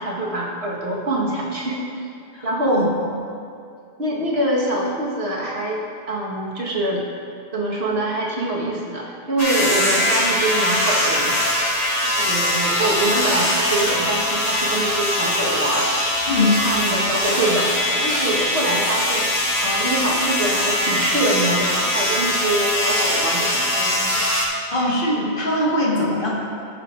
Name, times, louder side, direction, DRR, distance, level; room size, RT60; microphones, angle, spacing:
voice 1, 0.0-2.0 2.4-2.8 4.0-5.8 6.1-7.1 7.5-11.4 12.2-19.3 19.6-24.2, right 1 dB, 75° right, -4 dB, 1.6 m, -24 dB
voice 2, 2.3-2.9 16.3-16.6 24.7-26.3, left 1 dB, 55° left, -5 dB, 1.8 m, -21 dB
sound 1, 9.4-24.5, left 1 dB, 35° left, 1.4 m, -21 dB
15.5 x 6.7 x 2.5 m, 2.5 s
omnidirectional pair, 1.1 m